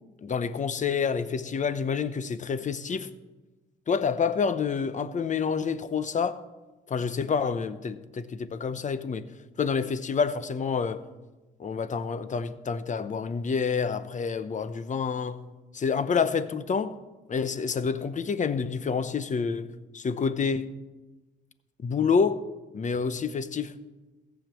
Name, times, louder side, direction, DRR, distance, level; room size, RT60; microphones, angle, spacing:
voice 1, 0.2-3.1 3.9-6.4 6.9-9.3 9.6-11.0 11.6-15.4 15.7-17.0 17.3-20.7 21.8-22.4 22.7-23.8, left 5 dB, 40° left, 0.9 m, -28 dB
15.0 x 7.4 x 7.4 m
cardioid pair, 90°, 20 cm